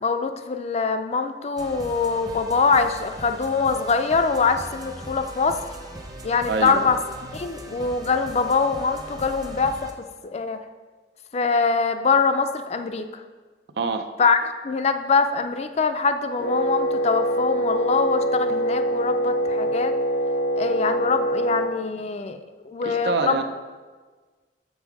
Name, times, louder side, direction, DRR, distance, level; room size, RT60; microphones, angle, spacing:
voice 1, 0.0-5.6 6.2-7.0 7.3-9.9 10.2-10.6 11.3-13.1 14.2-20.0 20.6-22.4 22.6-23.4, left 4 dB, 35° left, 8 dB, 0.4 m, -23 dB
sound 1, 1.6-9.9, right 1 dB, 20° right, 0.8 m, -40 dB
voice 2, 6.5-6.8 13.8-14.1 22.8-23.4, right 4 dB, 70° right, 7 dB, 0.6 m, -25 dB
Wind instrument woodwind instrument, 16.4-21.7, right 1 dB, 80° left, 0.7 m, -24 dB
7.5 x 5.3 x 4.7 m, 1.4 s
head